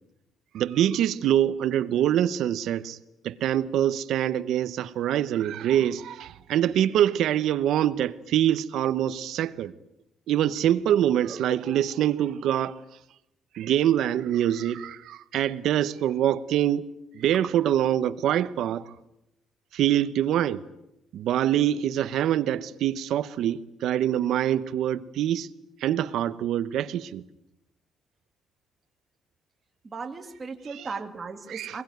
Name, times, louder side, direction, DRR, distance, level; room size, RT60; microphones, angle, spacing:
voice 1, 0.5-3.0 3.2-9.7 10.3-12.8 13.5-16.8 17.1-18.9 19.7-20.6 21.1-25.5 25.8-27.2 30.7-30.9 31.5-31.8, right 11 dB, 60° right, 1.0 m, -25 dB
voice 2, 29.8-31.8, right 4 dB, 20° right, 2.0 m, -36 dB
24.0 x 21.5 x 9.3 m
cardioid pair, 170°, 0 cm